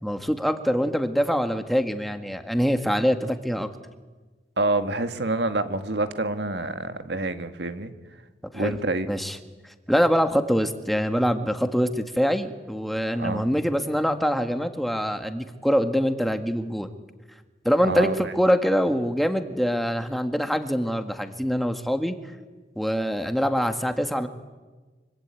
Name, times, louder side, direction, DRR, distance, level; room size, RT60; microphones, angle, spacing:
voice 1, 0.0-3.7 8.5-8.8 9.1-9.4 9.9-16.9 17.6-22.1 22.7-24.3, equal, ahead, 7 dB, 1.7 m, -24 dB
voice 2, 4.6-7.9 8.5-9.1 13.2-13.4 17.8-18.3, right 2 dB, 75° right, 9 dB, 2.0 m, -27 dB
25.5 x 24.5 x 9.2 m, 1.3 s
head